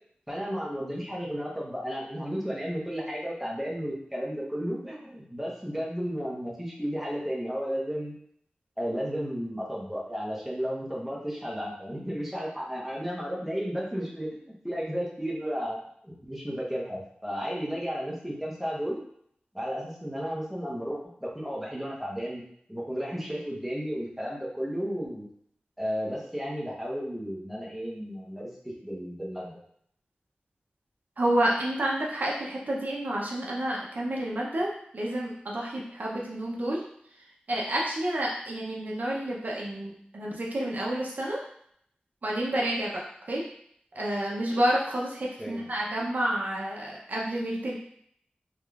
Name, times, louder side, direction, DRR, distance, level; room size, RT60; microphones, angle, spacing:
voice 1, 0.3-8.1 8.8-14.4 14.6-19.0 19.5-22.4 22.7-25.3 25.8-29.5 45.4-45.6, equal, 5° right, -5 dB, 1.0 m, -33 dB
voice 2, 31.2-36.8 37.5-41.4 42.2-43.4 43.9-47.8, right 1 dB, 60° right, -3 dB, 0.6 m, -29 dB
3.5 x 3.1 x 2.4 m, 0.67 s
wide cardioid pair, 75°, 3 cm